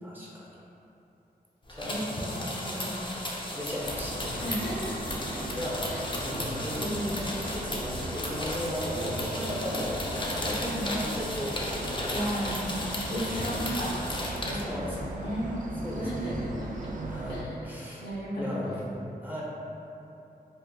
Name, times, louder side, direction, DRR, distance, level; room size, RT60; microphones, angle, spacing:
voice 1, 0.0-0.6 1.7-2.1 3.5-4.5 5.4-12.5 13.1-13.6 14.5-15.2 15.4-15.6 15.8-16.4 17.1-18.1 18.4-19.4, equal, 10° right, -6 dB, 0.7 m, -36 dB
sound 1, 1.7-14.6, left 1 dB, 30° left, 0.5 m, -35 dB
voice 2, 1.8-3.4 4.4-5.2 5.9-6.0 6.8-7.1 10.6-11.0 12.1-12.7 13.0-15.5 15.9-16.3 16.6-16.9 17.3-17.5 18.0-18.4, equal, 80° left, -6 dB, 0.8 m, -35 dB
sound 2, 3.8-17.4, right 2 dB, 50° right, 0.4 m, -38 dB
3.9 x 2.5 x 2.3 m, 2.9 s
cardioid pair, 65°, 17 cm